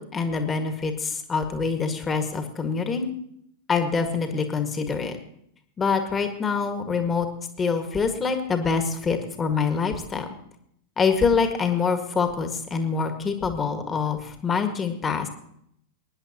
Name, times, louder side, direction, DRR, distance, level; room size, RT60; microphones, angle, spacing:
voice 1, 0.0-3.1 3.7-5.2 5.8-7.3 7.6-10.3 11.0-15.3, left 5 dB, 20° left, 6 dB, 1.8 m, -25 dB
23.5 x 10.5 x 2.9 m, 0.72 s
figure-of-eight pair, 90°, 0 cm